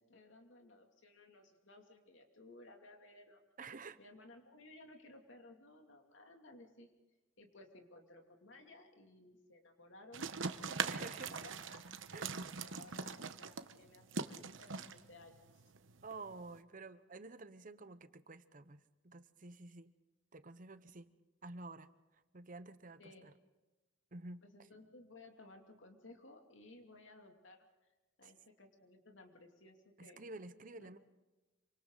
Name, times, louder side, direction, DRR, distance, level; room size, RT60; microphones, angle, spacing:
voice 1, 0.0-3.4 4.0-6.9 7.4-11.9 12.6-15.6 23.0-23.3 24.4-27.7 28.2-30.2 30.7-31.0, left 2 dB, 75° left, 3 dB, 2.8 m, -58 dB
voice 2, 3.6-4.0 10.9-11.3 12.1-12.3 16.0-19.9 20.3-21.1 21.4-21.9 22.3-23.3 24.1-24.4 28.2-28.3 30.0-31.0, right 3 dB, 45° right, 12 dB, 0.9 m, -50 dB
sound 1, 10.1-16.6, right 5 dB, 80° right, 1.0 m, -42 dB
27.0 x 25.5 x 4.0 m, 1.1 s
head